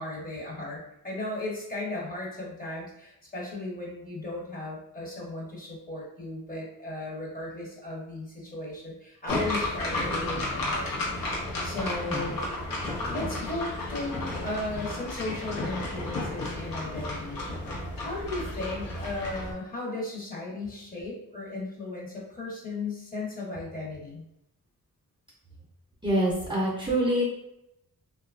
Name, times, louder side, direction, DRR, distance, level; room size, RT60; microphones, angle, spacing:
voice 1, 0.0-10.9 11.6-12.4 13.1-17.5 18.0-24.2, left 2 dB, 25° left, -5 dB, 0.8 m, -36 dB
sound 1, 9.3-19.5, left 2 dB, 75° left, 0.7 m, -32 dB
voice 2, 26.0-27.2, right 1 dB, 15° right, -5 dB, 0.6 m, -25 dB
2.8 x 2.2 x 2.4 m, 0.82 s
wide cardioid pair, 130°, 34 cm